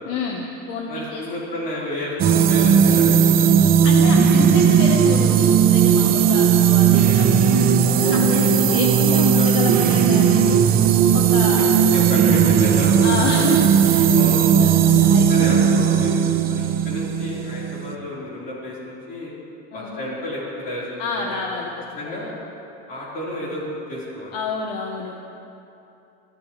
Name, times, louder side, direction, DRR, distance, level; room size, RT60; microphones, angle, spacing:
voice 1, 0.0-1.2 3.8-10.6 11.1-11.8 13.0-15.6 19.7-20.1 21.0-22.3 24.3-25.1, left 4 dB, 60° left, 0 dB, 1.3 m, -29 dB
voice 2, 0.9-3.8 6.0-6.3 8.0-8.8 9.0-10.1 11.1-11.6 11.9-13.3 14.1-14.5 15.3-19.3 19.7-21.5 21.9-22.3 22.9-24.4, left 1 dB, 30° left, -7 dB, 4.6 m, -31 dB
sound 1, 2.2-17.9, right 7 dB, 30° right, 0.8 m, -16 dB
29.0 x 13.0 x 3.4 m, 2.9 s
cardioid pair, 175°, 30 cm